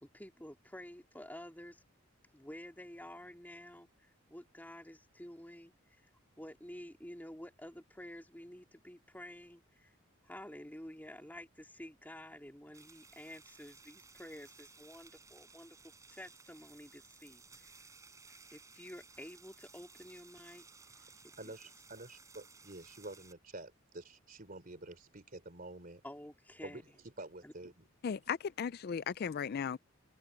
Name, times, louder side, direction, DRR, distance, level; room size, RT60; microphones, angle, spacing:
voice 1, 0.0-1.8 2.3-6.1 6.4-9.9 10.2-15.8 16.1-17.8 18.3-20.6 26.0-26.8 27.4-27.5, left 1 dB, 10° left, 3.2 m, -50 dB
sound 1, 12.7-23.3, right 4 dB, 15° right, 4.4 m, -58 dB
voice 2, 21.9-26.0 26.6-26.9 27.2-27.9, right 2 dB, 40° right, 3.4 m, -48 dB
voice 3, 28.0-29.8, left 7 dB, 50° left, 0.3 m, -36 dB
head